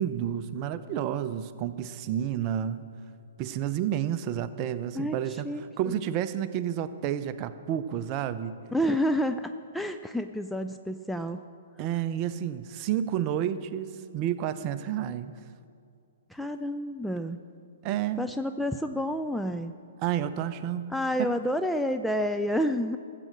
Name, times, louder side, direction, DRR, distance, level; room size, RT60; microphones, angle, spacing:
voice 1, 0.0-2.8 3.4-5.5 5.8-8.6 11.8-15.3 17.8-18.2 20.0-20.9 21.2-21.3, right 10 dB, 35° right, 12 dB, 0.6 m, -30 dB
voice 2, 4.9-5.6 8.7-11.4 16.3-17.4 18.2-19.7 20.9-23.0, equal, ahead, 6 dB, 0.4 m, -29 dB
13.5 x 7.7 x 7.4 m, 2.4 s
hypercardioid pair, 130°, 0 cm